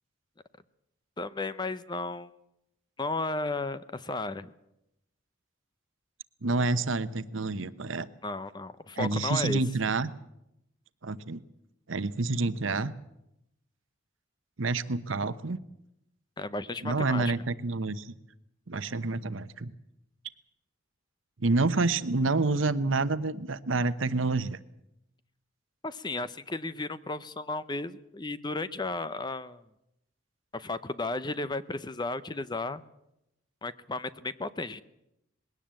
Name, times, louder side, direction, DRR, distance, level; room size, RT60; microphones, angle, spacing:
voice 1, 1.2-2.3 3.0-4.5 8.2-9.6 16.4-17.3 25.8-29.6 30.5-32.8 33.6-34.8, left 2 dB, 20° left, 15 dB, 0.6 m, -34 dB
voice 2, 6.4-8.1 9.0-10.1 11.0-11.4 11.9-12.9 14.6-15.6 16.8-18.2 18.7-19.7 21.4-24.6, right 3 dB, 80° right, 14 dB, 0.9 m, -28 dB
20.5 x 17.5 x 7.7 m, 0.85 s
head